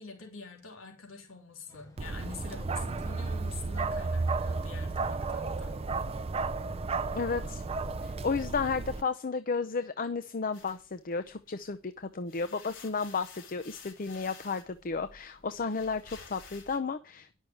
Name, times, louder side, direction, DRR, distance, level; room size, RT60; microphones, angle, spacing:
voice 1, 0.0-5.8, left 4 dB, 80° left, 1 dB, 3.3 m, -46 dB
sound 1, 1.7-8.4, left 1 dB, 15° left, 5.4 m, -55 dB
Bark, 2.0-9.0, right 3 dB, 30° right, 0.5 m, -33 dB
voice 2, 7.1-7.6 8.0-17.3, left 4 dB, 45° left, 10 dB, 0.6 m, -33 dB
sound 2, 10.5-11.7 12.1-16.8, left 5 dB, 60° left, 4.9 m, -52 dB
11.0 x 6.4 x 7.8 m, 0.35 s
head